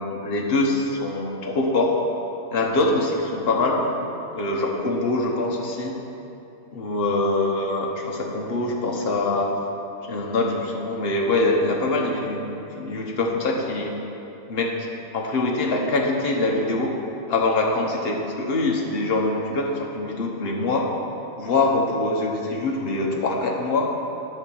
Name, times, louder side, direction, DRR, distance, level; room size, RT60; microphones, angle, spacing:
voice 1, 0.0-1.9 2.5-5.9 6.7-9.5 10.1-14.0 14.5-14.7 15.1-16.9 17.3-20.8 21.4-23.9, left 2 dB, 45° left, -1 dB, 1.2 m, -24 dB
10.5 x 4.5 x 7.0 m, 2.9 s
omnidirectional pair, 1.5 m